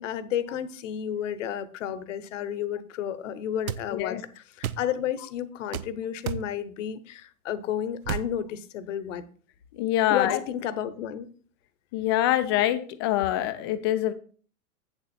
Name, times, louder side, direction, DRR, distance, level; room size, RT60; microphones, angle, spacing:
voice 1, 0.0-9.3 10.1-11.3, left 10 dB, 55° left, 14 dB, 0.9 m, -32 dB
sound 1, 3.7-3.8 4.6-4.9 5.7-5.9 6.3-6.5 8.0-8.3, right 9 dB, 70° right, 0.7 m, -31 dB
voice 2, 3.9-4.2 9.7-10.4 11.9-14.1, left 13 dB, 20° left, 10 dB, 0.4 m, -25 dB
8.3 x 7.1 x 4.3 m, 0.42 s
hypercardioid pair, 110°, 45 cm